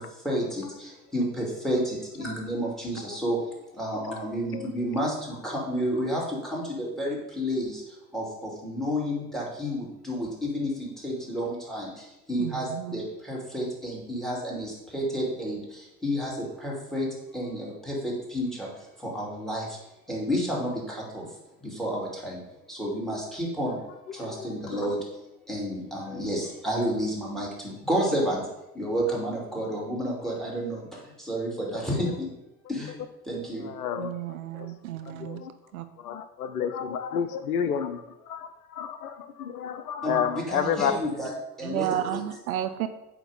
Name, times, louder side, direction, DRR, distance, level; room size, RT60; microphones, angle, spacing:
voice 1, 0.0-19.8 20.1-21.4 21.6-22.4 22.7-23.8 24.1-25.2 25.5-28.4 28.7-32.3 32.7-32.9 33.2-33.7 40.0-41.3 41.6-42.2, equal, ahead, -4 dB, 2.3 m, -31 dB
voice 2, 12.4-13.0 34.0-35.4 35.7-35.9 41.6-42.9, right 11 dB, 65° right, 10 dB, 0.6 m, -32 dB
voice 3, 24.2-24.9 33.7-34.7 35.1-35.5 36.0-40.9, left 8 dB, 75° left, 11 dB, 0.6 m, -31 dB
8.5 x 2.9 x 5.3 m, 0.91 s
figure-of-eight pair, 75°, 46 cm